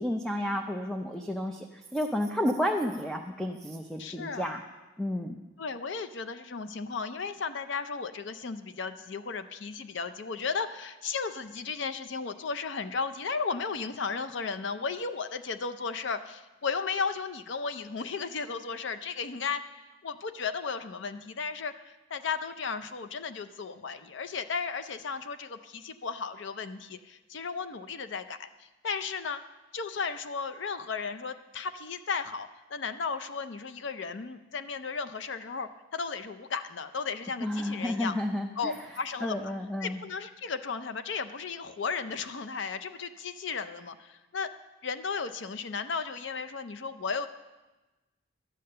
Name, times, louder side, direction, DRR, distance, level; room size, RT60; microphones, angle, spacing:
voice 1, 0.0-1.7 1.9-4.6 5.0-5.4 37.4-38.7 39.2-40.0, left 1 dB, 5° left, 3 dB, 0.5 m, -31 dB
voice 2, 4.0-4.5 5.6-29.4 29.7-38.1 38.6-39.5 39.8-44.5 44.8-47.3, left 5 dB, 60° left, 10 dB, 0.5 m, -35 dB
13.0 x 8.6 x 6.6 m, 1.1 s
head